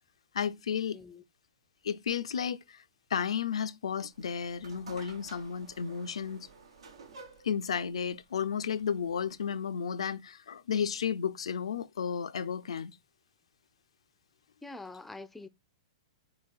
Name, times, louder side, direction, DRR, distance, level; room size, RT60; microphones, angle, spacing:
voice 1, 0.3-1.0 1.8-2.8 3.1-6.5 7.4-12.9, left 7 dB, 85° left, 0.4 m, -33 dB
voice 2, 0.9-1.2 14.6-15.5, left 3 dB, 5° left, 0.3 m, -45 dB
sound 1, 4.1-9.4, right 4 dB, 85° right, 1.1 m, -53 dB
4.2 x 3.9 x 2.4 m
hypercardioid pair, 130°, 3 cm